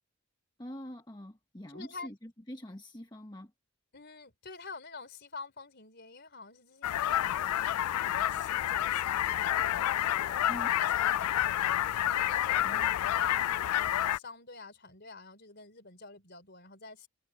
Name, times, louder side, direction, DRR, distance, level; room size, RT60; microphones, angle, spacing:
voice 1, 0.6-3.5 10.5-10.7 12.6-12.9, equal, 20° left, 1.2 m, -44 dB
voice 2, 1.7-2.1 3.9-7.6 8.0-11.7 12.1-17.1, left 3 dB, 50° left, 4.4 m, -48 dB
sound 1, 6.8-14.2, left 12 dB, 85° left, 0.3 m, -29 dB
head